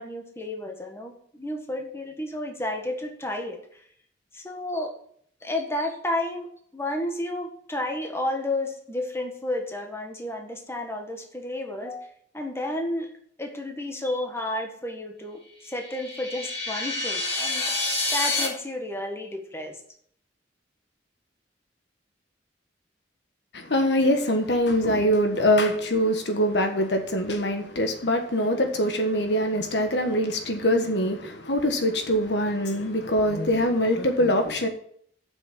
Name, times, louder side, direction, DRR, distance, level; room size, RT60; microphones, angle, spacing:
voice 1, 0.0-3.6 4.3-4.9 5.4-6.5 6.7-12.0 12.3-13.1 13.4-17.6 18.1-19.7, left 1 dB, 15° left, 1.5 m, -31 dB
sound 1, 15.7-18.5, left 2 dB, 35° left, 3.1 m, -28 dB
voice 2, 23.5-34.7, equal, 70° left, 1.4 m, -23 dB
7.8 x 6.3 x 7.4 m
head